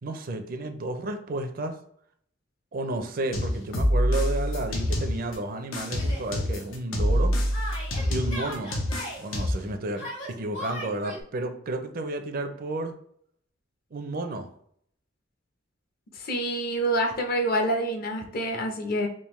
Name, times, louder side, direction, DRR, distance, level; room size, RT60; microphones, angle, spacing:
voice 1, 0.0-1.8 2.7-7.3 8.1-8.8 9.2-12.9 13.9-14.5, right 2 dB, 45° right, 7 dB, 0.4 m, -32 dB
sound 1, 3.3-5.4 5.7-9.7, equal, 90° left, 0.8 m, -26 dB
Yell, 6.0-6.3 7.5-9.2 9.9-11.2, equal, 70° left, 1.4 m, -37 dB
voice 2, 16.2-19.1, right 1 dB, 50° left, 3 dB, 0.6 m, -27 dB
3.5 x 2.5 x 3.1 m, 0.65 s
head